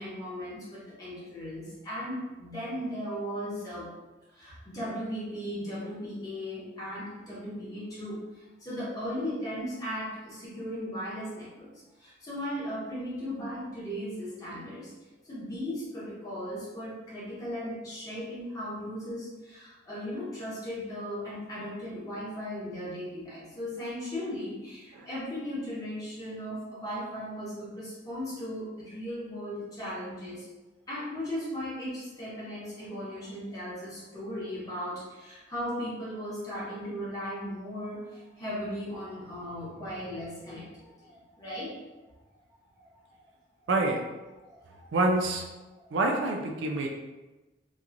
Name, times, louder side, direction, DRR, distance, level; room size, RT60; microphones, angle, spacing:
voice 1, 0.0-3.9 4.3-11.7 12.0-14.9 15.2-30.5 30.9-41.7 42.8-42.9 44.5-44.9 46.8-46.9, equal, 20° left, -9 dB, 1.0 m, -37 dB
voice 2, 43.7-44.0 44.9-45.5 45.9-46.9, right 2 dB, 70° right, 1 dB, 0.4 m, -26 dB
2.9 x 2.3 x 2.5 m, 1.1 s
head